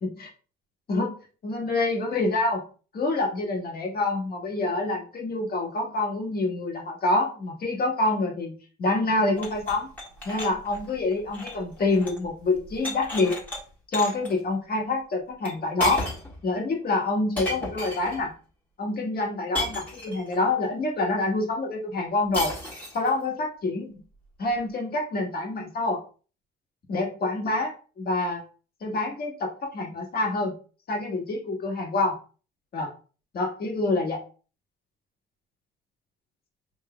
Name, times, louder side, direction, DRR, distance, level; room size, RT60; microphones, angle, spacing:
voice 1, 1.4-2.6 2.9-8.5 8.8-9.9 10.2-13.4 13.9-16.1 16.4-18.3 18.8-22.5 22.9-23.9 24.4-26.0 26.9-28.4 28.8-30.5 30.9-32.1 32.7-32.9 33.3-34.2, left 2 dB, 50° left, 1 dB, 1.5 m, -26 dB
sound 1, 9.4-12.3 12.5-13.6 13.9-14.3 15.4-15.5 15.8-16.4 17.4-18.2 19.5-20.4 22.3-23.1, left 1 dB, 10° left, 1.7 m, -34 dB
5.7 x 3.1 x 2.3 m, 0.37 s
cardioid pair, 90°, 20 cm